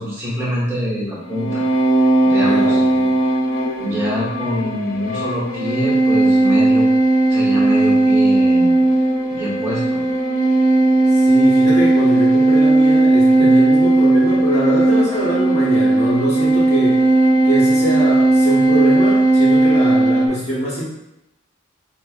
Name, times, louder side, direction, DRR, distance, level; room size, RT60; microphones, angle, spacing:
voice 1, 0.0-1.7 2.2-2.8 3.8-6.9 7.3-8.8 9.3-10.0, equal, 10° right, -8 dB, 0.9 m, -25 dB
sound 1, 1.2-20.3, right 2 dB, 70° left, 0.5 m, -16 dB
voice 2, 2.4-3.1 11.1-17.0 17.4-20.8, right 1 dB, 30° left, -6 dB, 1.0 m, -23 dB
5.2 x 2.0 x 2.4 m, 0.87 s
head